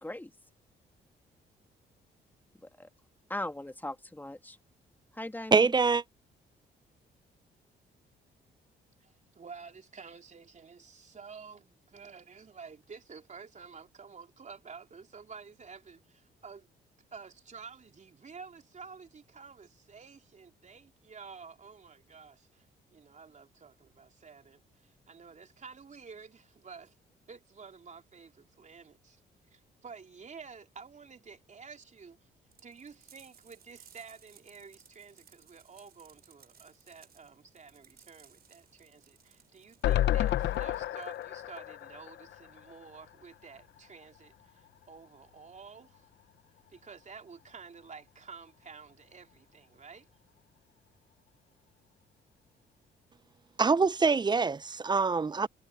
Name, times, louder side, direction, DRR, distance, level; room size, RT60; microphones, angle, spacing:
voice 1, 0.0-0.3 2.6-2.9 3.3-4.6 5.1-5.7, left 1 dB, 10° left, 2.3 m, -39 dB
voice 2, 5.5-6.0 53.6-55.5, right 4 dB, 25° right, 0.6 m, -25 dB
voice 3, 9.0-16.7 17.1-22.7 22.9-27.0 27.3-29.2 29.5-32.3 32.6-46.1 46.7-50.1, right 5 dB, 40° right, 3.4 m, -50 dB
sound 1, 32.5-41.9, right 8 dB, 55° right, 5.8 m, -61 dB
sound 2, 39.8-43.1 43.4-43.5 43.8-43.9, left 13 dB, 75° left, 0.9 m, -31 dB
supercardioid pair, 70°, 19 cm